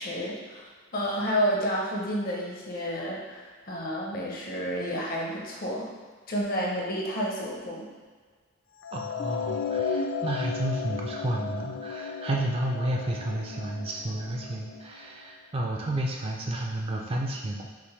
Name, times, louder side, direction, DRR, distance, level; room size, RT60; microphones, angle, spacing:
voice 1, 0.0-5.9 6.3-7.9, equal, 45° left, -2 dB, 0.7 m, -30 dB
sound 1, 8.8-15.1, left 5 dB, 70° left, 0.3 m, -34 dB
voice 2, 8.9-17.7, right 1 dB, 30° right, -1 dB, 0.3 m, -31 dB
5.7 x 2.1 x 3.1 m, 1.5 s
head